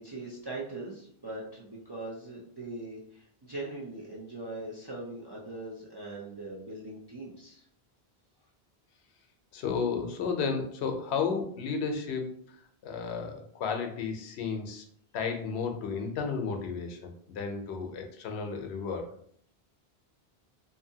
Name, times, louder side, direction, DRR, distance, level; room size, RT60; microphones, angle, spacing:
voice 1, 0.0-7.7, right 2 dB, 40° right, -5 dB, 0.4 m, -41 dB
voice 2, 9.5-12.2 12.8-14.8 15.1-19.0, left 5 dB, 85° left, 4 dB, 0.8 m, -33 dB
2.6 x 2.6 x 2.7 m, 0.63 s
omnidirectional pair, 1.1 m